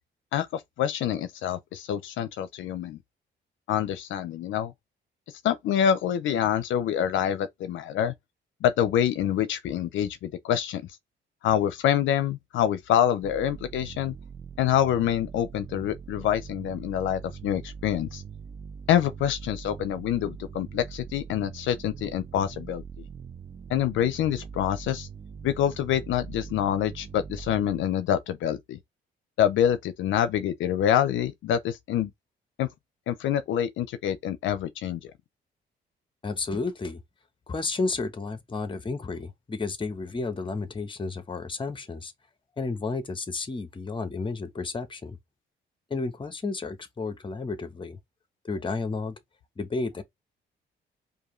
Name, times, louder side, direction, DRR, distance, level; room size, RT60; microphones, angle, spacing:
voice 1, 0.3-3.0 3.7-4.7 5.4-8.1 8.6-10.8 11.4-14.1 14.6-18.2 18.9-23.1 23.7-25.1 25.4-28.8 29.4-32.1 32.6-32.7 33.1-35.0, left 10 dB, 80° left, 0.5 m, -26 dB
sound 1, 13.2-27.8, right 6 dB, 25° right, 0.4 m, -42 dB
voice 2, 36.2-37.0 37.5-42.1 42.6-45.2 45.9-48.0 48.4-49.2 49.6-50.0, left 3 dB, 25° left, 0.9 m, -32 dB
4.7 x 2.7 x 3.0 m
cardioid pair, 90°, 20 cm